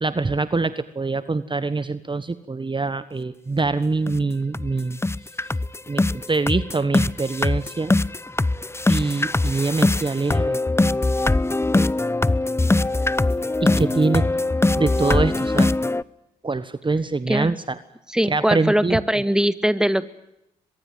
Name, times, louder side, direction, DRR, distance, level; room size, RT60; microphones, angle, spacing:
voice 1, 0.0-5.0 5.9-7.9 8.9-10.6 13.6-14.3 14.8-15.7 16.4-17.8 18.3-19.0, right 3 dB, 25° right, 14 dB, 1.3 m, -24 dB
sound 1, 3.6-3.7 4.1-4.2 4.5-4.7 5.0-16.0, left 2 dB, 15° left, 0.9 m, -21 dB
voice 2, 18.1-20.1, equal, 5° right, 13 dB, 1.9 m, -21 dB
23.5 x 22.5 x 9.1 m, 0.85 s
hypercardioid pair, 45°, 19 cm